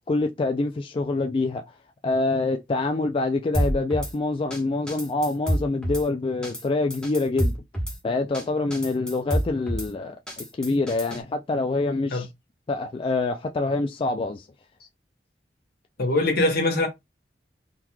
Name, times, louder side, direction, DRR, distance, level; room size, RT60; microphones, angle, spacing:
voice 1, 0.0-1.6 2.0-7.6 8.0-12.3 12.7-14.5, left 3 dB, 30° left, 0.3 m, -26 dB
Drum kit / Snare drum, 3.5-4.1 4.5-4.6 4.9-6.0 6.4-6.6 6.9-8.0 8.3-8.4 8.7-9.9 10.3-11.2, equal, 5° left, 1.2 m, -27 dB
voice 2, 16.0-16.9, left 2 dB, 60° left, 1.1 m, -22 dB
3.7 x 3.0 x 2.2 m
head